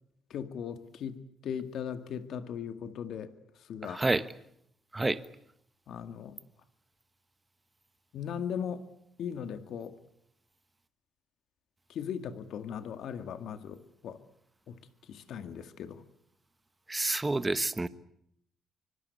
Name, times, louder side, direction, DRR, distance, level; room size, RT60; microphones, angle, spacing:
voice 1, 0.3-3.3 3.6-4.0 5.9-6.4 8.1-8.8 9.2-10.0 11.9-14.2 14.7-14.8 15.1-16.0, left 8 dB, 75° left, 9 dB, 2.0 m, -38 dB
voice 2, 3.8-4.2 4.9-5.2 16.9-17.9, right 2 dB, 20° right, 13 dB, 1.3 m, -28 dB
24.5 x 23.5 x 8.3 m, 0.74 s
cardioid pair, 90°, 0 cm